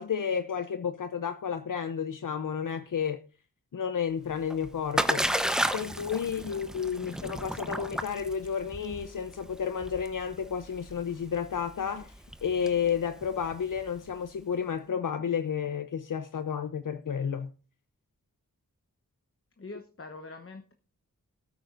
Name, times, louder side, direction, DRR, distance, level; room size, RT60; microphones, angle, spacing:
voice 1, 0.0-3.2 3.7-5.3 5.7-12.1 12.4-17.5, left 7 dB, 65° left, 0.7 m, -31 dB
Splash splatter, 4.3-14.1, equal, ahead, 0.9 m, -33 dB
voice 2, 6.4-6.7 7.0-7.1 19.6-20.7, left 3 dB, 40° left, 1.0 m, -45 dB
20.5 x 8.9 x 2.6 m
wide cardioid pair, 65°, 33 cm